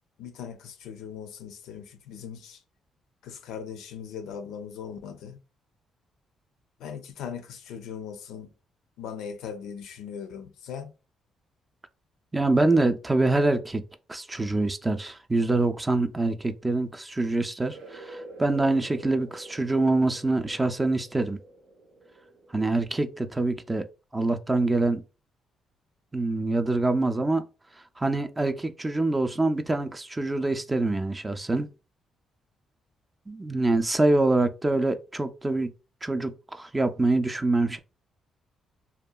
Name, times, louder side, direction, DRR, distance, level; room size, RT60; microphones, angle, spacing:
voice 1, 0.2-2.6 3.2-5.4 6.8-8.5 9.0-10.9 34.2-34.3, left 7 dB, 85° left, 0.4 m, -39 dB
voice 2, 12.3-13.8 14.1-21.4 22.5-23.9 24.1-25.0 26.1-27.4 28.0-31.7 33.3-35.7 36.0-37.8, right 2 dB, 15° right, 0.3 m, -25 dB
sound 1, 17.7-23.9, right 2 dB, 80° right, 0.8 m, -48 dB
2.8 x 2.2 x 2.2 m
cardioid pair, 90°, 0 cm